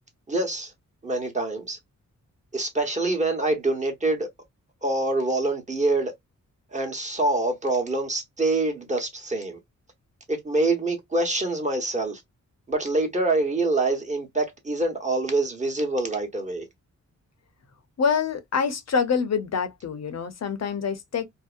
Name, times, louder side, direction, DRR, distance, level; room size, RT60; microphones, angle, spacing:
voice 1, 0.3-0.7 1.0-1.8 2.5-4.3 4.8-6.1 6.7-9.6 10.3-12.2 12.7-16.7, right 2 dB, 25° right, 1.0 m, -25 dB
voice 2, 18.0-21.3, left 6 dB, 55° left, 0.7 m, -26 dB
2.7 x 2.1 x 2.4 m
cardioid pair, 75°, 31 cm